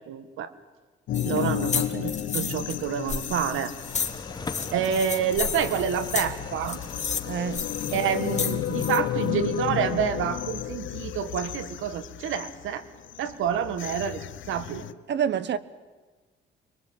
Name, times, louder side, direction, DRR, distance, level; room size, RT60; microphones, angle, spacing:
voice 1, 0.1-0.5 1.2-3.7 4.7-6.8 7.9-12.8 13.2-14.8, right 8 dB, 85° right, 1.8 m, -28 dB
sound 1, 1.1-14.9, left 12 dB, 75° left, 1.0 m, -33 dB
sound 2, 1.1-9.0, left 5 dB, 35° left, 2.2 m, -33 dB
sound 3, 3.4-10.4, left 3 dB, 20° left, 1.8 m, -42 dB
voice 2, 7.3-7.6 15.1-15.6, right 8 dB, 60° right, 1.2 m, -28 dB
26.5 x 22.5 x 9.1 m
cardioid pair, 90°, 20 cm